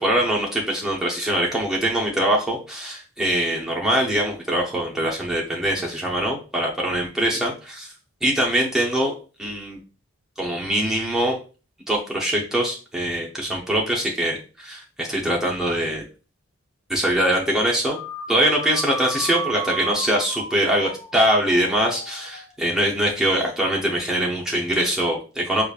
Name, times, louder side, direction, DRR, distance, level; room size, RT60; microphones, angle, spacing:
voice 1, 0.0-7.9 8.2-9.1 9.4-9.8 10.4-11.4 11.9-16.0 16.9-18.0 18.3-25.6, right 1 dB, ahead, -3 dB, 0.7 m, -23 dB
sound 1, 17.9-22.5, right 2 dB, 80° left, 1.2 m, -34 dB
4.9 x 2.4 x 2.4 m, 0.34 s
head